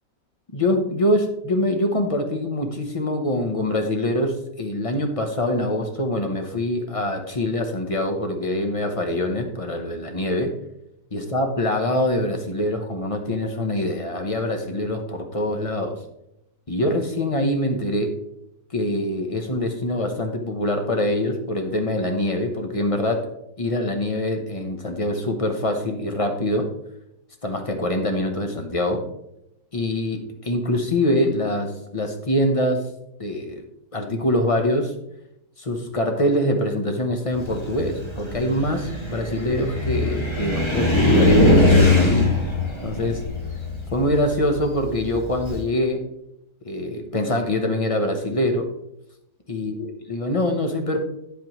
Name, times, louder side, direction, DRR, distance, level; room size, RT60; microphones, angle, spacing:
voice 1, 0.5-10.5 11.1-16.0 16.7-18.2 18.7-23.3 23.6-26.7 27.4-29.0 29.7-32.9 33.2-33.6 33.9-34.9 35.6-41.6 42.0-42.3 42.8-43.2 43.9-46.0 46.6-48.7 49.5-51.0, left 1 dB, 40° left, 4 dB, 0.5 m, -24 dB
Car, 37.4-45.6, left 2 dB, 15° left, 1.3 m, -21 dB
9.3 x 8.2 x 3.0 m, 0.81 s
omnidirectional pair, 1.9 m